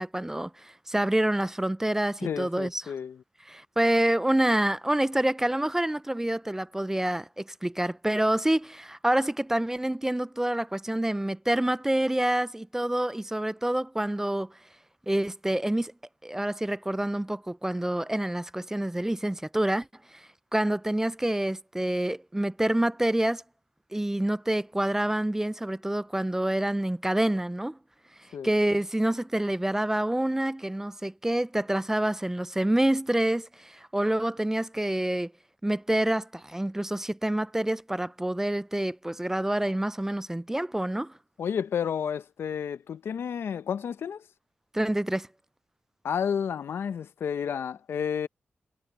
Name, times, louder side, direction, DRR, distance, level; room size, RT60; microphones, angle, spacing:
voice 1, 0.0-2.9 3.5-14.7 15.1-15.9 16.2-23.4 23.9-27.8 28.1-35.3 35.6-41.2 44.7-45.3, right 1 dB, 10° right, 0.4 m, -27 dB
voice 2, 2.2-3.2 28.3-28.5 41.4-44.2 46.0-48.3, left 7 dB, 80° left, 0.6 m, -31 dB
cardioid pair, 70°, 4 cm